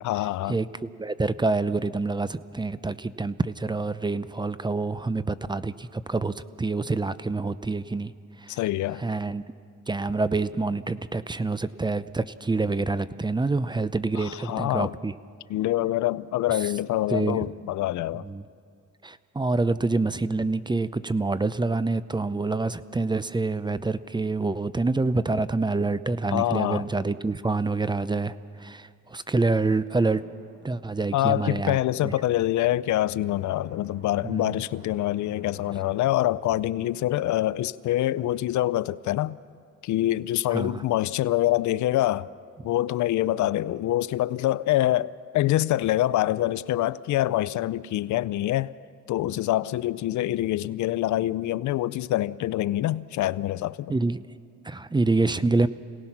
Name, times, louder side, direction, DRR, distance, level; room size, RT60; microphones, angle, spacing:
voice 1, 0.0-0.6 8.5-9.0 14.2-14.9 15.5-18.3 26.3-26.9 31.1-39.4 39.8-42.3 42.6-48.7 49.1-53.9, left 14 dB, 75° left, 0.5 m, -25 dB
voice 2, 1.0-8.1 8.4-8.6 9.0-9.4 9.9-15.1 17.1-17.4 18.2-18.4 19.0-30.2 30.6-32.1 34.2-34.6 40.5-40.8 53.9-54.2 54.6-55.7, right 3 dB, 15° right, 0.6 m, -27 dB
Drum, 30.0-38.2, right 3 dB, 75° right, 5.7 m, -53 dB
27.0 x 18.0 x 6.0 m
cardioid pair, 90°, 30 cm